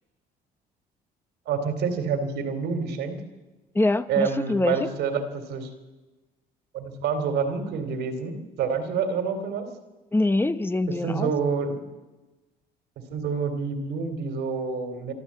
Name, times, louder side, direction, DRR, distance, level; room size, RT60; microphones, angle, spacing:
voice 1, 1.5-3.2 4.1-5.7 6.7-9.7 11.0-11.8 13.1-15.1, right 5 dB, 80° right, 8 dB, 3.0 m, -27 dB
voice 2, 3.7-4.9 10.1-11.3, left 2 dB, 15° left, 12 dB, 0.9 m, -24 dB
25.5 x 12.5 x 8.5 m, 1.2 s
cardioid pair, 110°, 17 cm